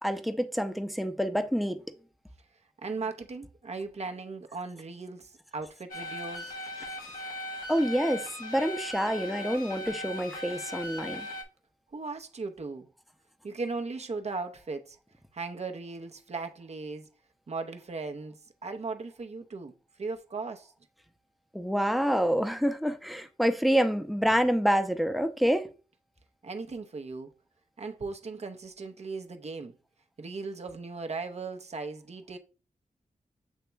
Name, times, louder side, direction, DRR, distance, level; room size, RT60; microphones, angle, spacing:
voice 1, 0.0-1.8 7.7-11.3 21.5-25.7, equal, ahead, 0.6 m, -27 dB
voice 2, 2.8-6.6 11.9-12.9 13.4-15.0 15.3-17.0 17.5-19.7 20.0-20.7 26.4-27.3 27.8-29.7 30.2-32.4, right 4 dB, 50° right, 0.7 m, -37 dB
sound 1, 5.9-11.4, left 1 dB, 80° left, 1.1 m, -39 dB
8.0 x 2.9 x 2.2 m
cardioid pair, 55°, 14 cm